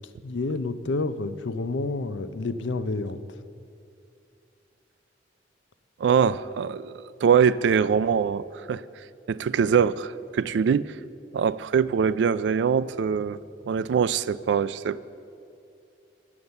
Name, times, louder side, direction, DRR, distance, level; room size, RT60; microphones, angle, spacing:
voice 1, 0.2-3.2, left 3 dB, 80° left, 0.5 m, -29 dB
voice 2, 6.0-6.9 7.2-8.8 9.3-11.0 11.3-13.4 13.7-15.0, right 7 dB, 65° right, 0.3 m, -23 dB
9.6 x 7.2 x 7.8 m
head